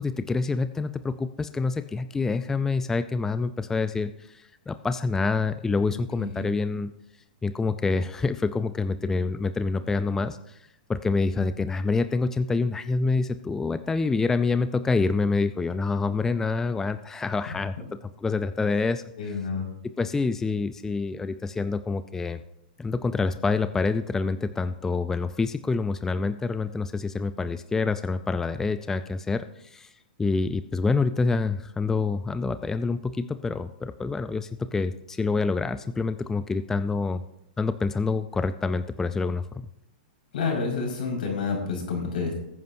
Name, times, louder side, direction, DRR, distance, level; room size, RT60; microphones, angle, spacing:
voice 1, 0.0-6.9 7.4-10.6 10.9-17.7 18.2-19.4 20.0-22.4 22.8-29.9 30.2-37.2 37.6-39.7, left 4 dB, 10° left, 11 dB, 0.4 m, -27 dB
voice 2, 19.2-19.7 40.3-42.3, left 4 dB, 75° left, 0 dB, 5.1 m, -29 dB
20.0 x 9.5 x 2.7 m, 0.84 s
hypercardioid pair, 130°, 5 cm